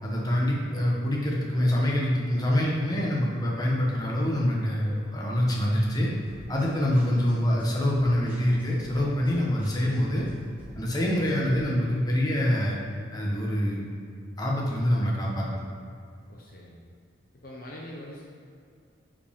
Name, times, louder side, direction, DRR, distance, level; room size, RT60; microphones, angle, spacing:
voice 1, 0.0-6.1 6.5-10.3 10.8-12.8 13.1-13.8 14.4-15.5, left 1 dB, 20° left, -3 dB, 1.1 m, -25 dB
sound 1, 6.3-11.6, equal, 10° right, 1.8 m, -47 dB
voice 2, 16.3-16.8 17.4-18.2, left 1 dB, 45° left, -3 dB, 0.8 m, -42 dB
9.3 x 5.1 x 3.6 m, 2.4 s
head